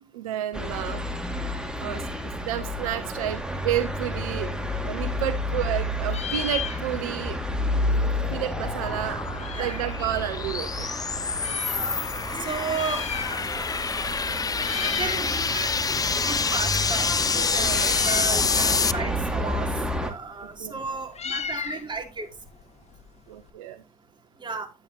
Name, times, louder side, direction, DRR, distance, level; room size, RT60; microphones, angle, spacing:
voice 1, 0.1-1.0 1.8-4.5 4.9-7.4 8.3-9.2 9.6-10.9 17.6-18.0 20.6-20.7 23.3-23.8, right 12 dB, 80° right, 0.8 m, -31 dB
sound 1, 0.5-20.1, equal, 5° right, 2.3 m, -31 dB
Meow, 4.7-5.7 6.0-7.3 7.6-7.7 7.8-10.0 10.6-11.8 12.6-13.8 14.0-14.2 14.5-15.3 15.6-23.5, left 7 dB, 40° left, 1.5 m, -37 dB
sound 2, 7.4-18.9, left 5 dB, 20° left, 0.5 m, -27 dB
voice 2, 9.6-9.9 11.7-12.0 12.4-13.0 14.8-15.7 16.2-17.1 17.3-19.7 20.0-22.3 24.4-24.7, right 4 dB, 25° right, 3.0 m, -33 dB
10.5 x 8.8 x 3.0 m
hypercardioid pair, 60°, 18 cm